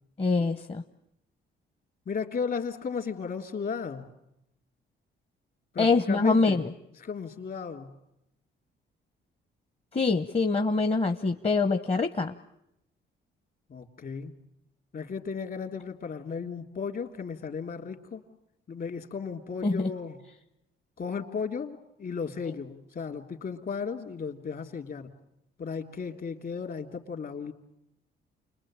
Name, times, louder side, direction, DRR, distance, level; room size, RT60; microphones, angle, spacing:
voice 1, 0.2-0.8 5.8-6.7 9.9-12.3 19.6-19.9, left 3 dB, 30° left, 8 dB, 1.0 m, -25 dB
voice 2, 2.0-4.1 5.7-6.6 7.0-7.9 13.7-14.3 14.9-18.2 18.7-20.2 21.0-25.1 25.6-27.5, left 5 dB, 50° left, 5 dB, 3.1 m, -35 dB
29.0 x 21.0 x 8.9 m, 0.85 s
cardioid pair, 90°, 20 cm